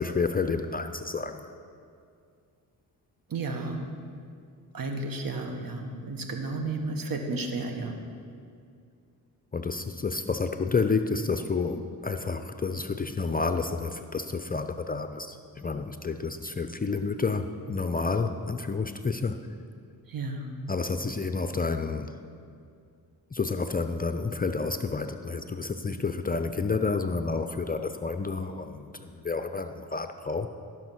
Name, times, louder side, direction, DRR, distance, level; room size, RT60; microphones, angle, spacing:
voice 1, 0.0-1.5 9.5-19.4 20.7-22.1 23.3-30.5, left 4 dB, 20° left, 8 dB, 0.5 m, -30 dB
voice 2, 3.3-3.9 4.7-8.0 20.1-20.6, right 3 dB, 55° right, 4 dB, 1.5 m, -33 dB
13.5 x 6.4 x 5.9 m, 2.3 s
cardioid pair, 60°, 40 cm